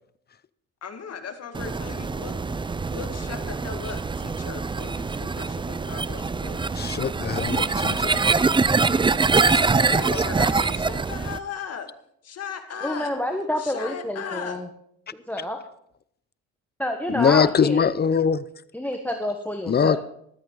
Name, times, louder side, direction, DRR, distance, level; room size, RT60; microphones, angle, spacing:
voice 1, 0.8-2.3 2.9-6.8 9.3-11.9 12.2-13.1 13.6-14.6, left 7 dB, 55° left, 6 dB, 2.0 m, -37 dB
sound 1, 1.5-11.4, right 4 dB, 15° right, 0.5 m, -24 dB
voice 2, 6.8-8.4 10.0-10.1 17.1-18.5 19.7-20.0, left 6 dB, 35° left, 17 dB, 0.6 m, -22 dB
voice 3, 12.8-14.7 15.1-15.6 16.8-17.9 18.7-20.0, left 1 dB, 5° left, 5 dB, 1.3 m, -28 dB
14.0 x 13.0 x 4.0 m, 0.71 s
cardioid pair, 90°, 30 cm